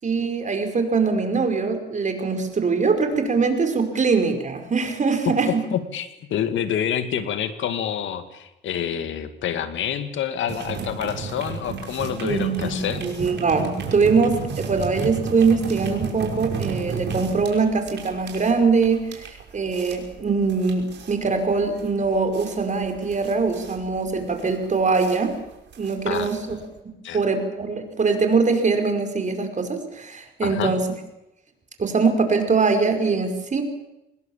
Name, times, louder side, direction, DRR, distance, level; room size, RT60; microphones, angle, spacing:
voice 1, 0.0-5.6 12.2-25.4 25.8-26.4 27.1-30.8 31.8-33.6, right 4 dB, 40° right, 6 dB, 5.3 m, -22 dB
voice 2, 5.2-13.1 26.1-26.6 27.0-27.2 30.4-30.7, left 9 dB, 75° left, 10 dB, 2.3 m, -28 dB
sound 1, 10.5-26.8, right 5 dB, 60° right, 5.9 m, -33 dB
26.0 x 21.0 x 7.4 m, 0.90 s
cardioid pair, 90°, 20 cm